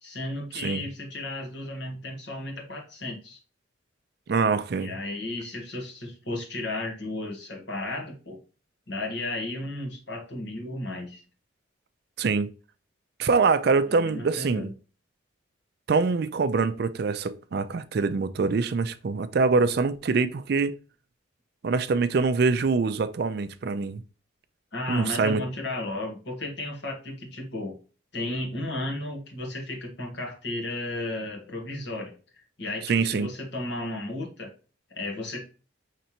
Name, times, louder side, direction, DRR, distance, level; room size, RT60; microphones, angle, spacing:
voice 1, 0.0-3.4 4.8-8.4 8.9-11.2 13.9-14.7 24.7-27.8 28.1-34.5 34.9-35.5, left 2 dB, 60° left, 1.4 m, -34 dB
voice 2, 0.5-0.9 4.3-4.9 12.2-12.5 13.2-14.7 15.9-20.8 21.6-24.0 24.9-25.4 32.9-33.3, right 4 dB, 55° right, 0.4 m, -24 dB
5.4 x 3.3 x 2.8 m
head